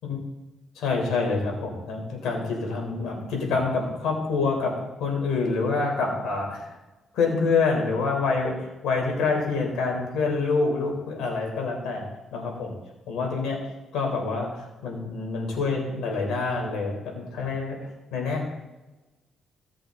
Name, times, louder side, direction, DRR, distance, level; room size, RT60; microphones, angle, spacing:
voice 1, 0.8-4.7 5.0-6.7 7.1-12.0 12.3-12.7 13.1-13.6 13.9-18.6, left 4 dB, 80° left, 0 dB, 3.8 m, -27 dB
17.0 x 7.7 x 3.9 m, 1.1 s
cardioid pair, 90°, 0 cm